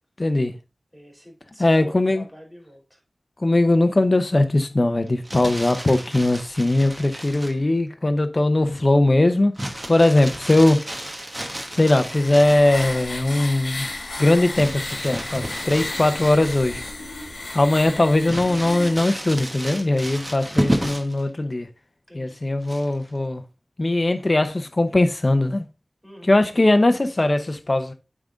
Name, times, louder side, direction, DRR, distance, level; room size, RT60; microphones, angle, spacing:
voice 1, 0.2-0.5 1.6-2.3 3.4-9.5 9.9-10.8 11.7-13.9 14.2-16.8 17.5-21.7 22.1-23.4 23.8-25.7 26.2-27.9, left 2 dB, 40° left, 0.7 m, -20 dB
voice 2, 0.9-3.0 22.1-22.3 26.0-26.3, equal, ahead, 3.2 m, -45 dB
Crumpling crinkling, 5.1-7.6 9.6-13.1 14.6-16.9 17.3-17.4 18.3-21.2 22.6-23.1, right 1 dB, 20° right, 1.3 m, -31 dB
sound 1, 11.5-19.1, left 2 dB, 70° left, 1.6 m, -34 dB
8.8 x 3.7 x 3.8 m
wide cardioid pair, 65°, 0 cm